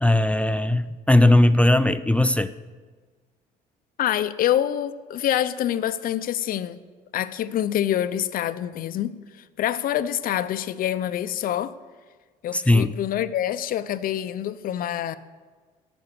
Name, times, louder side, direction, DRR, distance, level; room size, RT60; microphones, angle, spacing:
voice 1, 0.0-2.5 12.5-12.9, left 1 dB, 5° left, 0.3 m, -18 dB
voice 2, 4.0-6.8 7.1-9.1 9.6-11.7 12.4-15.2, left 11 dB, 55° left, 0.6 m, -26 dB
13.5 x 6.1 x 6.8 m
cardioid pair, 110°, 17 cm